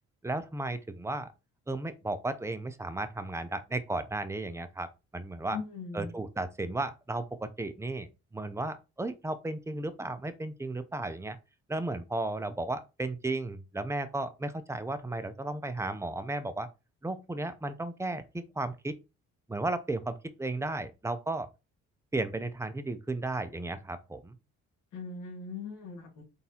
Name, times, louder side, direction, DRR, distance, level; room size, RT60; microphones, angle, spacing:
voice 1, 0.2-1.3 1.7-4.9 5.1-5.6 5.9-11.4 11.7-16.7 17.0-18.9 19.5-21.5 22.1-24.4, right 2 dB, 10° right, 0.5 m, -34 dB
voice 2, 5.5-6.1 24.9-26.2, left 4 dB, 75° left, 1.7 m, -39 dB
3.9 x 3.5 x 2.8 m
cardioid pair, 90°, 30 cm